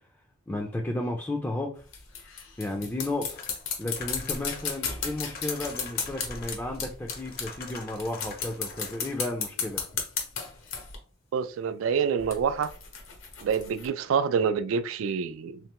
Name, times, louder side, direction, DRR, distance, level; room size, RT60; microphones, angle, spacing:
voice 1, 0.5-1.9 2.6-3.4 3.8-9.8, left 1 dB, 10° left, 0.4 m, -33 dB
sound 1, 1.8-7.7 8.0-11.0 12.2-13.9, left 6 dB, 80° left, 0.9 m, -34 dB
sound 2, 3.3-6.8 7.1-9.3, left 4 dB, 50° left, 0.6 m, -45 dB
voice 2, 11.3-12.7 13.4-15.6, right 6 dB, 80° right, 0.3 m, -27 dB
3.6 x 3.3 x 2.9 m
head